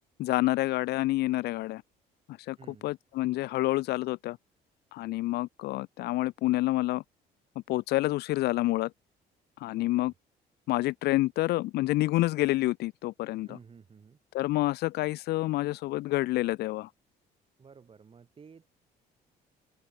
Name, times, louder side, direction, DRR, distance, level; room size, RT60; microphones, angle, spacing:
voice 1, 0.2-1.8 2.5-2.6 2.8-4.4 4.9-7.0 7.7-8.9 9.6-10.1 10.7-13.6 14.3-16.9, left 17 dB, 75° left, 0.6 m, -28 dB
voice 2, 2.6-2.9 9.7-10.1 13.4-14.2 17.6-18.7, right 6 dB, 35° right, 7.6 m, -53 dB
cardioid pair, 110°, 17 cm